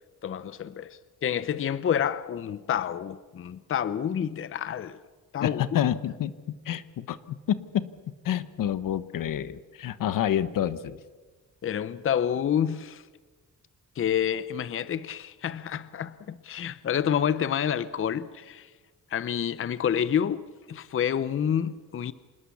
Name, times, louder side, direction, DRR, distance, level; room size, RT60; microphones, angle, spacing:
voice 1, 0.2-5.0 5.3-5.8 11.6-13.0 14.0-18.7 19.1-20.4 20.7-22.1, left 9 dB, 40° left, 0.7 m, -28 dB
voice 2, 5.4-6.3 6.6-7.9 8.2-11.0, left 10 dB, 75° left, 1.2 m, -28 dB
27.0 x 20.0 x 7.1 m
wide cardioid pair, 155°, 33 cm